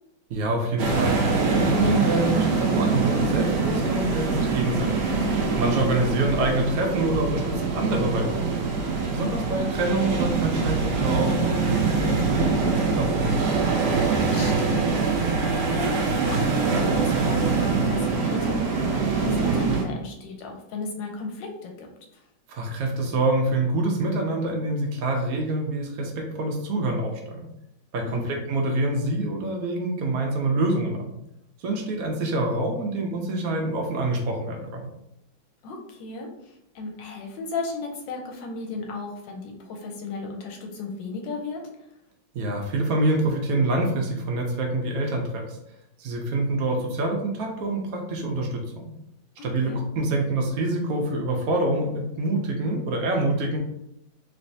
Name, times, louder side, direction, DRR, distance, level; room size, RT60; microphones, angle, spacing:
voice 1, 0.3-1.2 1.5-4.9 5.6-8.7 9.1-13.1 22.5-27.4 27.9-31.1 31.6-34.9 42.3-45.6 46.0-48.9 49.4-53.6, right 2 dB, 90° right, 1 dB, 0.7 m, -26 dB
sound 1, 0.8-19.8, right 4 dB, 70° right, 1.0 m, -24 dB
voice 2, 12.9-13.2 13.9-21.9 22.1-22.3 28.0-28.4 35.6-41.6 49.4-49.8, left 3 dB, 75° left, 2 dB, 1.2 m, -35 dB
3.2 x 3.0 x 2.7 m, 0.80 s
omnidirectional pair, 2.2 m